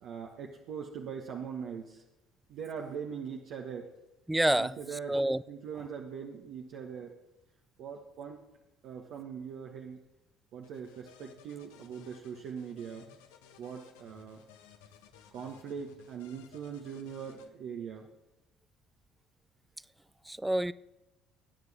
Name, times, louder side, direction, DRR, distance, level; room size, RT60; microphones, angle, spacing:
voice 1, 0.0-2.0 2.5-3.9 4.6-5.2 5.5-7.2 7.8-8.4 8.8-10.0 10.5-13.1 13.6-14.5 15.3-18.1, right 7 dB, 60° right, 1.4 m, -41 dB
voice 2, 4.3-4.7 5.1-5.4 20.3-20.7, right 1 dB, 10° right, 0.5 m, -27 dB
sound 1, 10.6-17.5, left 8 dB, 75° left, 1.2 m, -58 dB
21.0 x 9.6 x 3.6 m
hypercardioid pair, 60°, 0 cm